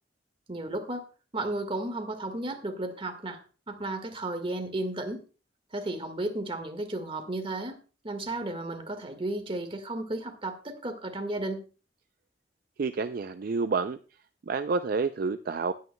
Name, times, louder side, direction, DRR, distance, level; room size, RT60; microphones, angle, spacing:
voice 1, 0.5-1.1 1.3-5.2 5.7-11.7, right 2 dB, 30° right, 1.6 m, -34 dB
voice 2, 12.8-14.0 14.5-15.7, right 4 dB, 55° right, 0.4 m, -29 dB
19.5 x 9.3 x 2.2 m
head